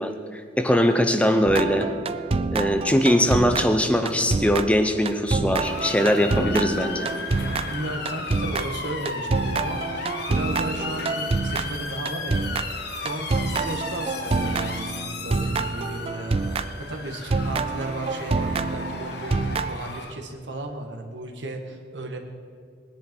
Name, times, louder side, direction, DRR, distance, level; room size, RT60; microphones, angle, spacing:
voice 1, 0.0-1.9 2.5-7.1, equal, 5° left, 7 dB, 0.7 m, -21 dB
sound 1, 1.5-16.9 17.3-19.8, right 3 dB, 30° right, 0.4 m, -27 dB
Motor vehicle (road) / Siren, 5.6-20.1, left 4 dB, 60° left, 1.4 m, -34 dB
voice 2, 7.7-12.6 12.9-16.5 16.8-22.2, right 2 dB, 75° right, 4 dB, 1.6 m, -34 dB
19.5 x 10.5 x 4.6 m, 2.1 s
head